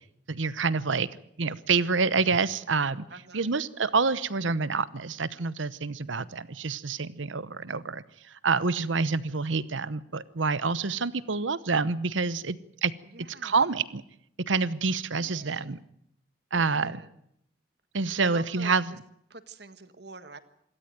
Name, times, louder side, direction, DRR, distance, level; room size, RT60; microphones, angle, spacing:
voice 1, 0.3-1.1 1.4-3.0 3.3-8.0 8.4-12.6 12.8-12.9 13.4-14.0 14.5-15.8 16.5-17.0 17.9-19.0, right 4 dB, 80° right, 17 dB, 0.9 m, -27 dB
voice 2, 3.1-3.5 7.7-7.8 8.7-8.9 13.0-13.7 15.2-15.8 16.5-17.1 18.2-19.0 19.3-20.4, right 3 dB, 55° right, 11 dB, 1.6 m, -46 dB
26.0 x 13.5 x 9.2 m, 0.74 s
head